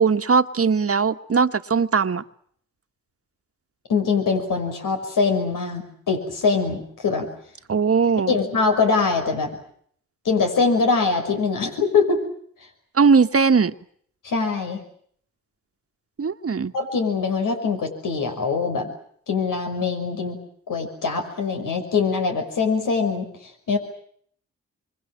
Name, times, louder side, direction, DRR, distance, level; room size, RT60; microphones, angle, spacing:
voice 1, 0.0-2.2 7.7-8.4 12.9-13.7 16.2-16.7, right 5 dB, 45° right, 9 dB, 1.6 m, -19 dB
voice 2, 3.9-7.3 8.3-9.6 10.2-12.2 14.2-14.8 16.7-18.9 19.3-20.4 20.7-23.8, left 4 dB, 75° left, 4 dB, 5.9 m, -23 dB
27.0 x 25.0 x 7.7 m, 0.63 s
supercardioid pair, 45°, 32 cm